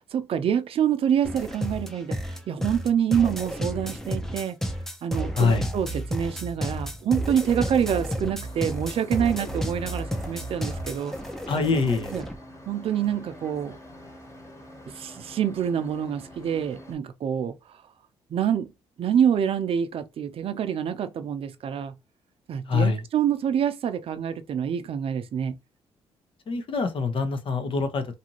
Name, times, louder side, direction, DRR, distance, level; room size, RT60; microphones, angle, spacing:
voice 1, 0.1-4.6 5.0-11.1 12.1-12.2 12.7-13.8 15.0-17.6 18.3-18.7 19.0-21.9 22.5-25.6, right 8 dB, 55° right, 0.5 m, -26 dB
sound 1, 1.2-12.4, equal, 5° left, 0.6 m, -32 dB
voice 2, 5.3-5.7 11.5-12.1 22.7-23.0 26.5-28.1, left 4 dB, 50° left, 0.7 m, -24 dB
sound 2, 8.4-16.9, left 1 dB, 25° left, 1.3 m, -46 dB
2.7 x 2.5 x 2.9 m
supercardioid pair, 70°, 11 cm